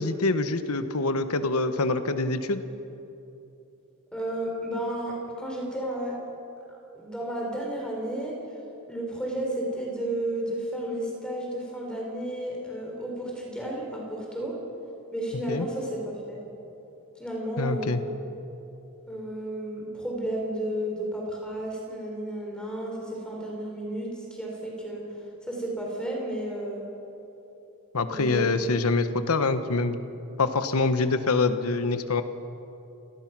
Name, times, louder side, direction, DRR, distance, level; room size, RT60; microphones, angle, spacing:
voice 1, 0.0-2.6 15.5-15.7 17.6-18.0 27.9-30.0 30.4-32.2, left 3 dB, 85° left, 10 dB, 1.1 m, -25 dB
voice 2, 4.1-6.2 6.6-6.7 6.9-8.4 8.9-14.5 15.1-16.4 17.2-18.0 19.1-25.0 25.5-26.9 28.1-28.6, right 1 dB, 5° left, -1 dB, 4.2 m, -32 dB
29.5 x 17.5 x 6.1 m, 2.9 s
head